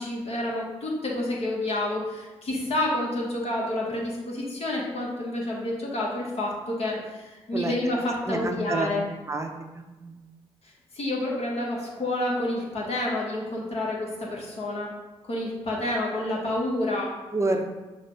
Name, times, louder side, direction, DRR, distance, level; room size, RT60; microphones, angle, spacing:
voice 1, 0.0-9.0 10.9-14.9 15.2-17.1, left 1 dB, 60° left, -3 dB, 1.3 m, -29 dB
voice 2, 7.5-7.9 8.3-9.5 10.0-10.2 17.3-17.6, right 2 dB, 25° right, 4 dB, 0.6 m, -28 dB
5.6 x 2.4 x 3.2 m, 1.1 s
supercardioid pair, 50°, 12 cm